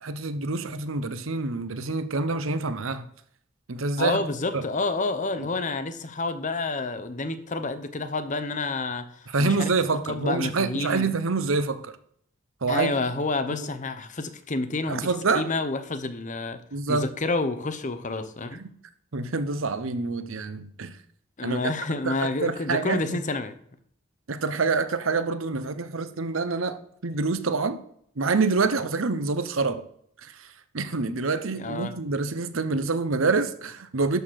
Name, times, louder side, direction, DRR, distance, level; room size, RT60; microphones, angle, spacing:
voice 1, 0.0-3.1 3.7-4.2 4.5-4.6 5.4-5.5 9.3-11.9 12.6-12.9 13.5-13.7 14.9-15.5 16.7-17.1 18.6-18.7 19.1-21.0 21.4-21.7 22.0-23.2 24.3-27.8 28.2-29.8 30.2-34.2, right 4 dB, 80° right, 0.8 m, -27 dB
voice 2, 4.0-9.7 10.1-11.1 12.7-15.1 15.3-16.6 16.9-18.6 21.4-23.6 31.6-31.9, left 3 dB, 40° left, 0.9 m, -29 dB
12.0 x 4.3 x 6.4 m
head